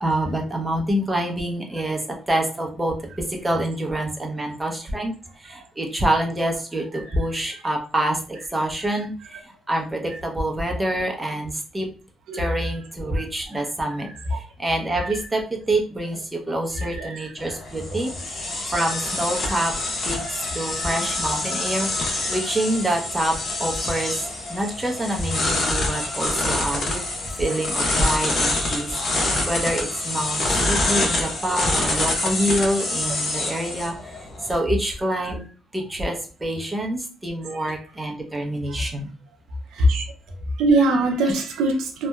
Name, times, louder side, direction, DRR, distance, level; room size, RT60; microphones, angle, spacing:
voice 1, 0.0-2.0 2.3-2.9 3.3-5.1 5.4-11.9 12.3-18.1 18.7-19.7 20.1-20.2 20.5-27.1 27.4-34.2 34.5-35.4 35.7-39.1, right 1 dB, 15° right, 1 dB, 0.6 m, -26 dB
voice 2, 16.8-17.3 18.8-18.9 20.7-20.9 38.7-38.9 39.7-40.0 40.6-42.1, right 1 dB, 85° right, 2 dB, 0.5 m, -22 dB
sound 1, 17.4-34.6, left 2 dB, 55° left, 0.8 m, -26 dB
2.8 x 2.2 x 2.2 m, 0.38 s
cardioid pair, 90°, 0 cm